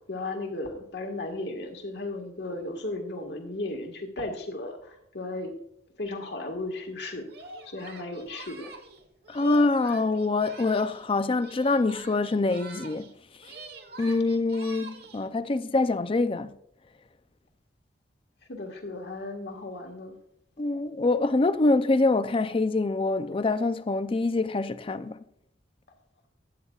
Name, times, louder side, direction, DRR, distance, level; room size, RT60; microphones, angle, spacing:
voice 1, 0.1-5.5 6.0-7.3 7.6-8.7 18.5-20.2, left 2 dB, 65° left, 1.7 m, -35 dB
Singing, 7.3-11.1 11.4-13.1 13.4-15.3, right 2 dB, 60° right, 1.2 m, -45 dB
voice 2, 9.3-13.1 13.4-13.6 14.0-16.6 20.6-25.2, left 3 dB, 30° left, 0.4 m, -25 dB
12.5 x 9.5 x 2.4 m
head